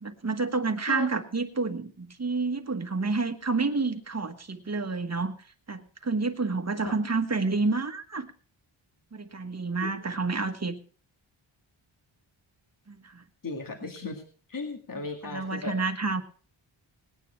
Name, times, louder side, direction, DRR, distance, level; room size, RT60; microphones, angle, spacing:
voice 1, 0.0-5.3 5.7-8.3 9.1-10.8 12.9-13.2 15.2-16.2, right 3 dB, 30° right, 7 dB, 1.4 m, -29 dB
voice 2, 13.4-14.2 14.5-15.8, left 3 dB, 40° left, 2 dB, 2.1 m, -36 dB
19.5 x 9.3 x 4.5 m, 0.40 s
wide cardioid pair, 125°, 48 cm